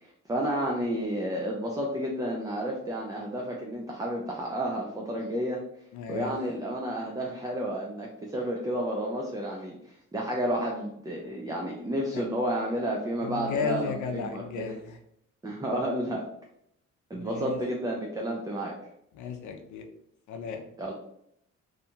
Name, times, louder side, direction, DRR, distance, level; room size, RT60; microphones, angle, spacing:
voice 1, 0.0-5.6 6.1-14.8 15.4-16.2 17.1-18.7 20.8-20.9, right 1 dB, 15° right, -1 dB, 0.4 m, -31 dB
voice 2, 5.9-6.3 12.1-12.2 13.2-15.0 17.1-17.6 19.1-19.8 20.3-20.6, left 5 dB, 75° left, 5 dB, 0.5 m, -34 dB
2.7 x 2.2 x 2.8 m, 0.76 s
cardioid pair, 90°, 30 cm